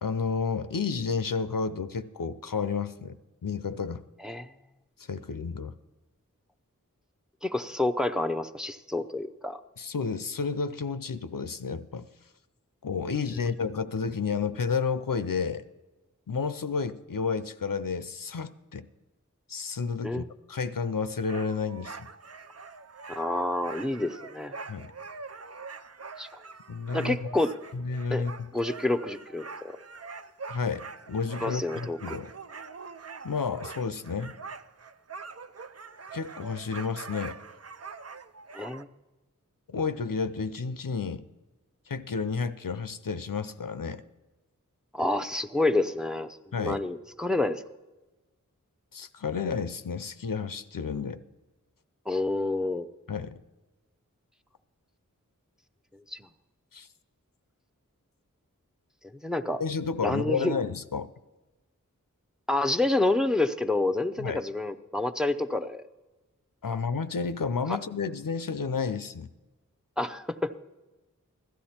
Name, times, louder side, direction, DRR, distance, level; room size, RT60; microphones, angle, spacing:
voice 1, 0.0-3.2 3.4-4.0 5.1-5.7 9.8-12.1 12.8-15.6 16.3-18.9 19.5-22.0 24.7-24.9 26.7-27.2 27.7-28.5 30.5-32.3 33.2-34.3 36.1-37.4 39.7-41.2 41.9-44.0 46.5-46.8 48.9-51.2 53.1-53.4 56.7-56.9 59.6-61.1 64.2-64.4 66.6-69.3, left 5 dB, 85° left, 12 dB, 0.6 m, -31 dB
voice 2, 7.4-9.6 20.0-20.2 23.2-24.5 26.2-26.3 26.9-27.5 28.1-28.2 28.5-29.4 31.4-32.2 38.5-38.9 44.9-46.3 46.6-47.6 52.1-52.9 56.1-56.3 59.2-59.6 60.0-60.5 62.5-65.8 70.0-70.6, left 2 dB, ahead, 10 dB, 0.6 m, -28 dB
sound 1, 21.3-38.8, right 4 dB, 50° right, 0.5 m, -44 dB
16.0 x 12.5 x 4.3 m, 1.1 s
wide cardioid pair, 40°, 33 cm